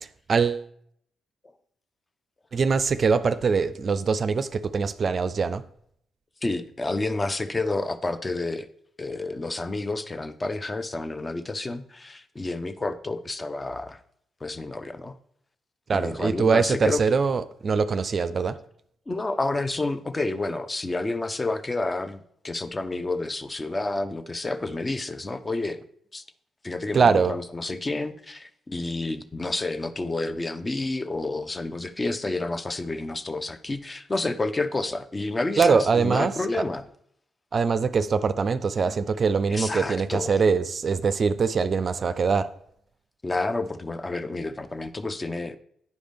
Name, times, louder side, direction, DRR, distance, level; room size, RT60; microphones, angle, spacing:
voice 1, 0.3-0.7 2.5-5.6 15.9-18.6 26.9-27.3 35.6-36.6 37.5-42.5, right 5 dB, 50° right, 0.4 m, -23 dB
voice 2, 6.4-8.7 9.0-14.0 14.4-15.1 15.9-17.0 19.1-25.8 26.1-26.2 26.6-36.8 39.5-40.4 43.2-45.6, left 2 dB, 30° left, 0.7 m, -29 dB
9.4 x 5.0 x 3.4 m
hypercardioid pair, 40°, 0 cm